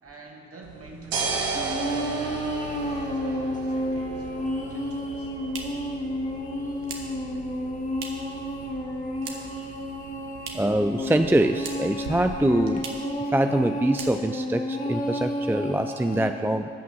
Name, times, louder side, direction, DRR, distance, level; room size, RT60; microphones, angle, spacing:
voice 1, 0.0-5.3, right 2 dB, 40° right, 0 dB, 2.3 m, -47 dB
sound 1, 0.6-12.7, right 4 dB, 85° right, 1.4 m, -36 dB
sound 2, 1.5-16.3, left 1 dB, 20° left, 2.3 m, -31 dB
voice 2, 3.9-4.4 10.5-12.8 13.3-16.7, right 1 dB, 5° right, 7 dB, 0.5 m, -24 dB
sound 3, 5.0-8.4 8.7-9.7 9.9-10.9 11.1-12.1 12.3-12.4 12.7-13.2 13.5-13.6 13.9-14.5, right 5 dB, 65° right, 1.6 m, -41 dB
13.5 x 5.9 x 7.5 m, 2.2 s
hypercardioid pair, 45°, 34 cm